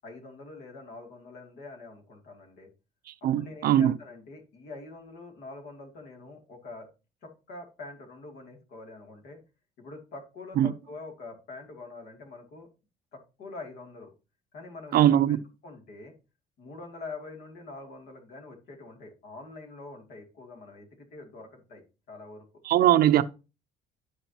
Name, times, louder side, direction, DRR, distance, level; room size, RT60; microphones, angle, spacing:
voice 1, 0.0-2.7 3.2-6.9 7.2-9.4 9.8-12.7 13.1-14.1 14.5-15.4 15.6-16.1 16.6-22.4, left 3 dB, 75° left, 2.6 m, -45 dB
voice 2, 3.2-3.9 10.6-10.7 14.9-15.4 22.7-23.2, right 11 dB, 65° right, 0.6 m, -20 dB
12.0 x 5.0 x 2.9 m
cardioid pair, 110°, 17 cm